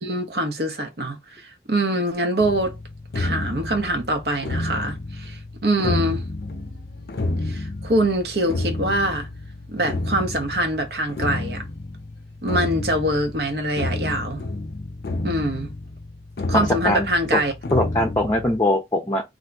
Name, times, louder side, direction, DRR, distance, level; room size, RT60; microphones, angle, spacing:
voice 1, 0.0-2.8 3.1-6.2 7.4-9.3 9.7-11.6 12.4-14.4 15.2-15.7 16.5-17.5, right 1 dB, 65° right, 0.9 m, -24 dB
sound 1, 2.4-18.6, left 2 dB, 60° left, 0.5 m, -30 dB
voice 2, 16.5-17.1 17.7-19.2, left 1 dB, 15° left, 0.6 m, -21 dB
2.8 x 2.6 x 3.4 m
head